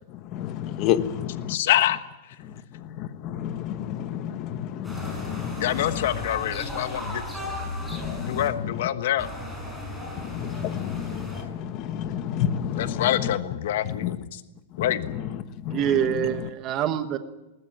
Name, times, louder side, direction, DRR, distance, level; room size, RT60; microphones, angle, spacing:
voice 1, 0.3-1.5 3.0-5.6 7.9-8.4 10.2-13.1 14.0-14.1 15.6-15.8, left 10 dB, 30° left, 10 dB, 1.3 m, -30 dB
voice 2, 1.5-2.0 5.6-7.2 8.2-9.3 12.7-14.4 14.8-15.2, left 12 dB, 55° left, 10 dB, 1.3 m, -26 dB
sound 1, 4.8-8.5 9.2-11.4, left 1 dB, 5° right, 5.9 m, -35 dB
voice 3, 15.7-17.2, right 10 dB, 25° right, 9 dB, 1.3 m, -25 dB
20.5 x 20.5 x 8.8 m, 1.0 s
supercardioid pair, 175°, 0 cm